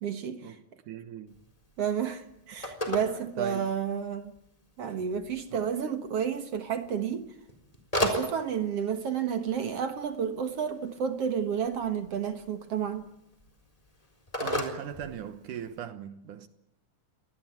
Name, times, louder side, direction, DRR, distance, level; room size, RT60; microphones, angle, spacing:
voice 1, 0.0-0.6 1.8-4.3 4.8-7.2 8.0-13.1, right 8 dB, 55° right, 2.0 m, -31 dB
voice 2, 0.8-1.4 3.4-3.7 5.5-5.7 14.4-16.5, right 9 dB, 70° right, 2.6 m, -39 dB
Telephone, 1.3-15.8, left 1 dB, 10° left, 3.8 m, -38 dB
25.0 x 19.0 x 9.2 m
omnidirectional pair, 3.9 m